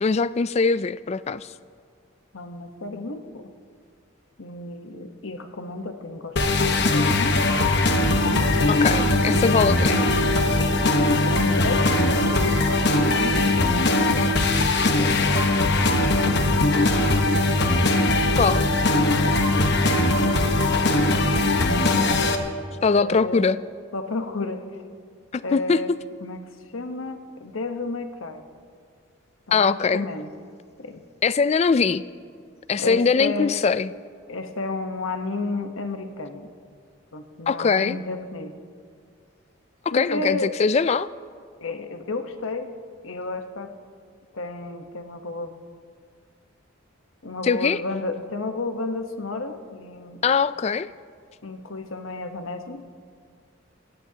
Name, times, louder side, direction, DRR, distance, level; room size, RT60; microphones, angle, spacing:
voice 1, 0.0-1.5 8.7-10.0 18.4-18.6 22.8-23.6 25.3-25.8 29.5-30.0 31.2-32.0 32.7-33.9 37.5-38.0 39.9-41.1 47.4-47.8 50.2-50.9, left 5 dB, 30° left, 16 dB, 0.3 m, -21 dB
voice 2, 2.3-3.5 4.4-7.4 8.3-8.6 9.3-10.1 11.2-14.3 15.0-15.9 18.2-18.7 23.0-23.6 23.9-24.6 25.4-25.9 26.2-26.4 26.7-28.4 29.5-30.3 30.8-31.0 32.8-33.5 34.3-36.5 37.1-38.5 39.9-40.5 41.6-42.7 43.0-43.7 44.3-45.6 47.2-50.2 51.4-52.8, left 3 dB, 80° left, 6 dB, 1.0 m, -32 dB
sound 1, 6.4-22.4, left 2 dB, 55° left, 1.1 m, -20 dB
22.5 x 17.0 x 2.8 m, 2.1 s
head